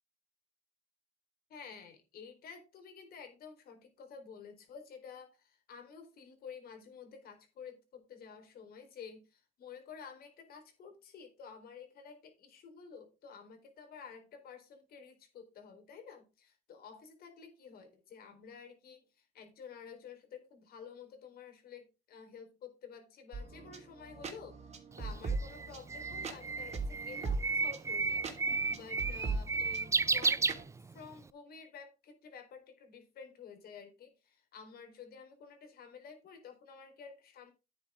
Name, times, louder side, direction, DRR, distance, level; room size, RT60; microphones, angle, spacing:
voice 1, 1.5-24.6 24.9-30.5 30.9-37.5, left 6 dB, 65° left, 7 dB, 4.1 m, -51 dB
sound 1, 23.3-30.6, right 3 dB, 40° right, 2.8 m, -40 dB
Bird, 25.0-31.2, right 4 dB, 15° right, 0.5 m, -33 dB
10.5 x 9.3 x 3.7 m, 0.27 s
cardioid pair, 110°, 17 cm